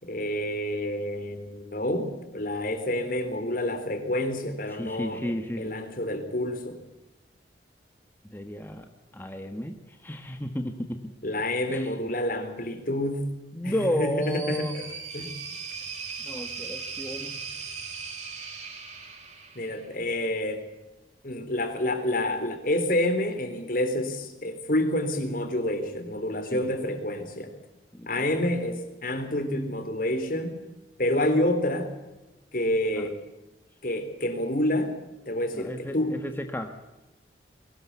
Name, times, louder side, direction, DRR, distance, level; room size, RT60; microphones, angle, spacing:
voice 1, 0.0-5.2 5.6-6.8 11.2-13.3 13.6-14.9 15.1-15.3 19.6-20.6 21.2-27.5 28.1-30.6 31.0-31.9 32.5-33.2 33.8-35.0 35.3-36.2, left 1 dB, 50° left, 8 dB, 3.7 m, -28 dB
voice 2, 4.7-5.7 8.3-8.9 9.1-11.0 11.7-12.1 13.5-14.7 16.2-17.4 26.5-26.8 27.9-28.7 32.9-33.1 35.5-36.7, left 1 dB, 10° left, 5 dB, 1.4 m, -33 dB
sound 1, 13.7-20.0, right 5 dB, 45° right, 5.3 m, -38 dB
22.0 x 19.0 x 8.3 m, 1.0 s
head